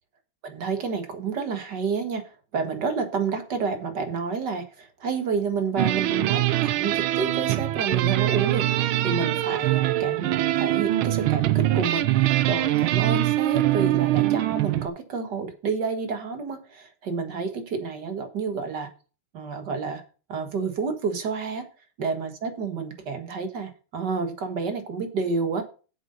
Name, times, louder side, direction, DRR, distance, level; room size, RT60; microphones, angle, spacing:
voice 1, 0.4-10.3 10.6-18.9 19.3-20.0 20.3-21.7 22.0-25.6, right 5 dB, 55° right, 7 dB, 2.2 m, -29 dB
sound 1, 5.8-14.9, right 15 dB, 75° right, 1.5 m, -23 dB
8.0 x 7.9 x 5.5 m, 0.35 s
omnidirectional pair, 2.3 m